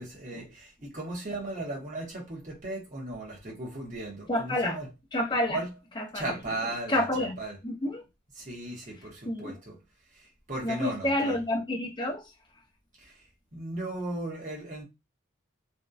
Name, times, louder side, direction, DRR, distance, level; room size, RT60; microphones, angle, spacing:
voice 1, 0.0-4.9 5.5-5.7 6.1-7.1 7.4-7.6 8.4-9.8 10.2-11.4 13.0-13.1 13.5-14.8, right 2 dB, 35° right, 0.9 m, -36 dB
voice 2, 4.3-4.8 5.1-5.6 6.0-6.2 6.9-7.4 7.6-8.0 9.3-9.6 10.6-12.2, left 1 dB, 20° left, 0.5 m, -29 dB
2.6 x 2.1 x 2.3 m
head